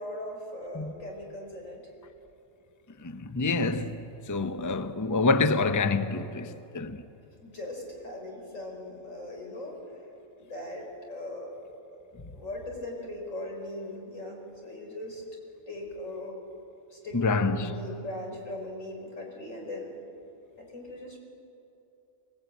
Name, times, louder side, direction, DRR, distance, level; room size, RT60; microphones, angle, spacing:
voice 1, 0.0-1.8 7.4-9.8 10.4-11.5 12.3-15.2 15.7-16.4 16.9-19.9 20.6-21.2, left 1 dB, 85° left, 5.2 m, -39 dB
voice 2, 3.0-7.0 17.1-17.7, left 3 dB, 20° left, 0.7 m, -27 dB
24.0 x 18.5 x 9.1 m
omnidirectional pair, 1.3 m